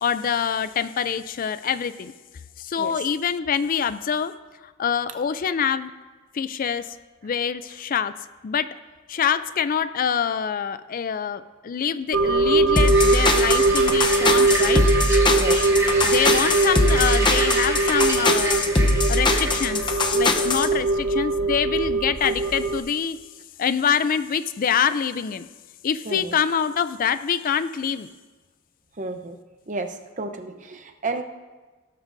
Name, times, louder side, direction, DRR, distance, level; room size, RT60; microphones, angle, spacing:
voice 1, 0.0-2.1 2.6-4.3 4.8-5.9 6.3-6.9 7.2-8.1 8.4-8.8 9.1-14.8 16.0-18.6 19.1-23.2 23.6-25.5 25.8-28.1, left 7 dB, 45° left, 14 dB, 0.4 m, -25 dB
sound 1, 12.1-22.8, right 3 dB, 85° right, 1.0 m, -22 dB
sound 2, 12.8-20.7, left 2 dB, 25° left, 0.7 m, -21 dB
sound 3, 12.8-19.9, right 1 dB, 15° right, 1.9 m, -30 dB
voice 2, 15.3-15.7 26.0-26.3 29.0-29.4 29.7-31.2, right 2 dB, 40° right, 7 dB, 0.8 m, -31 dB
17.5 x 12.5 x 2.6 m, 1.3 s
head